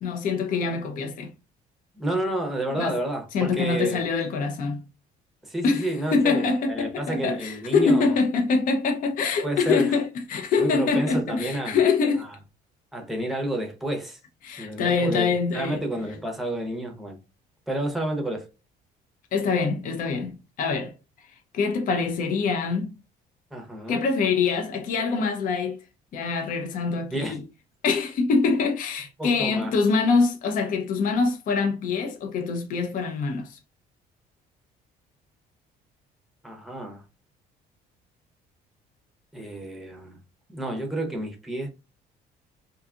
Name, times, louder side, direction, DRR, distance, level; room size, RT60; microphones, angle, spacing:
voice 1, 0.0-1.3 2.8-3.0 3.3-4.8 5.6-12.3 14.4-15.8 19.3-20.9 21.5-23.0 23.9-25.8 26.1-27.4 27.8-33.6, left 4 dB, 55° left, 0.5 m, -24 dB
voice 2, 1.9-4.0 5.4-8.2 9.4-10.0 10.6-11.8 12.2-12.3 12.9-14.2 14.6-15.3 15.5-17.2 17.7-18.5 23.5-24.0 27.1-27.4 29.2-29.7 36.4-37.0 39.3-40.2 40.5-41.7, right 1 dB, ahead, 0.7 m, -30 dB
2.6 x 2.3 x 2.4 m
cardioid pair, 110°, 17 cm